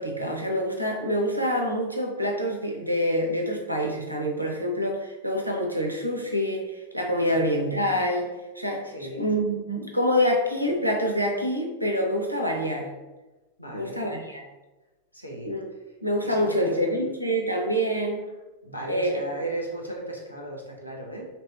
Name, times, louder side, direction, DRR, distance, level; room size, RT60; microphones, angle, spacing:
voice 1, 0.0-12.9 13.7-14.4 15.5-15.7 16.0-18.2 18.9-19.2, equal, 85° right, 1 dB, 0.4 m, -26 dB
voice 2, 7.2-7.6 8.8-9.2 13.6-14.0 15.1-15.6 16.2-17.1 18.6-21.3, right 1 dB, 85° left, -2 dB, 0.6 m, -36 dB
2.7 x 2.2 x 3.1 m, 1.1 s
figure-of-eight pair, 90°, 0 cm